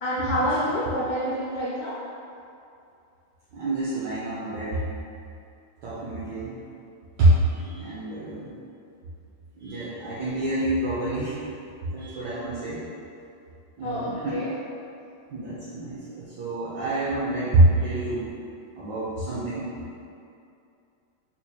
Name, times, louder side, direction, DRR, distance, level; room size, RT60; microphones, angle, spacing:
voice 1, 0.0-1.9 13.8-14.5, equal, 85° left, -8 dB, 0.8 m, -27 dB
voice 2, 3.5-4.8 5.8-6.6 7.2-8.5 9.6-11.4 11.9-12.8 13.8-14.4 15.3-18.3 18.7-19.7, right 1 dB, 70° right, -9 dB, 1.2 m, -26 dB
4.2 x 3.0 x 2.2 m, 2.6 s
omnidirectional pair, 2.1 m